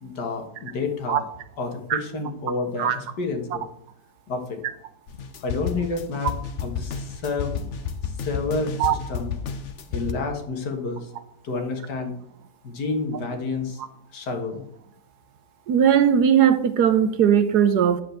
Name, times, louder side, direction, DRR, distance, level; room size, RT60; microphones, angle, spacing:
voice 1, 0.0-1.2 1.6-3.6 4.3-4.6 5.4-6.3 6.6-7.7 8.0-9.3 9.9-11.1 11.4-12.2 12.6-13.8 14.1-14.6, left 3 dB, 75° left, 4 dB, 2.1 m, -29 dB
sound 1, 5.1-10.1, left 6 dB, 55° left, 0.9 m, -31 dB
voice 2, 15.7-18.0, right 8 dB, 70° right, 12 dB, 1.2 m, -18 dB
10.0 x 4.7 x 7.7 m, 0.70 s
omnidirectional pair, 1.8 m